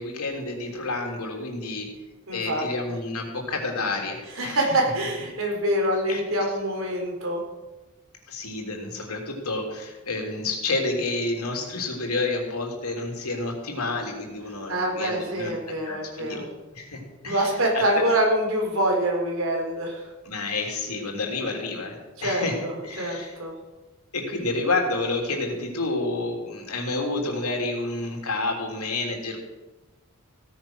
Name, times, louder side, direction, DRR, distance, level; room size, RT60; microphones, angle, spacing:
voice 1, 0.0-1.9 2.3-4.6 6.1-6.2 8.3-16.5 16.7-18.0 20.2-23.3 24.1-29.4, left 3 dB, 85° left, 2 dB, 3.4 m, -29 dB
voice 2, 2.3-2.6 4.3-7.4 14.7-16.4 17.3-20.0 22.2-23.5, right 1 dB, 65° right, 1 dB, 4.4 m, -25 dB
16.5 x 9.8 x 6.4 m, 1.1 s
head